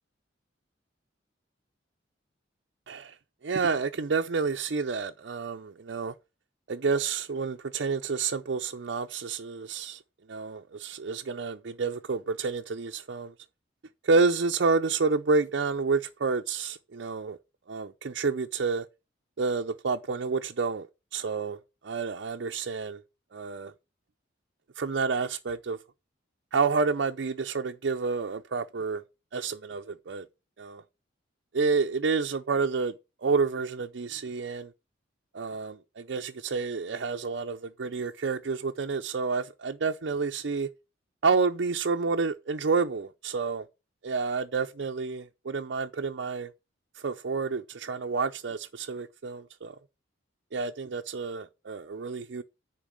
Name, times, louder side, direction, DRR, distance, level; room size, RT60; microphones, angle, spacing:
voice 1, 3.4-6.1 6.7-10.0 10.3-13.3 14.0-17.4 17.7-18.9 19.4-20.9 21.1-21.6 21.8-23.0 23.3-23.7 24.8-25.8 26.5-29.0 29.3-30.2 30.6-30.8 31.5-32.9 33.2-34.7 35.3-40.7 41.2-43.6 44.0-46.5 47.0-49.8 50.5-52.4, right 4 dB, 65° right, 0.5 m, -29 dB
10.5 x 4.5 x 5.1 m
head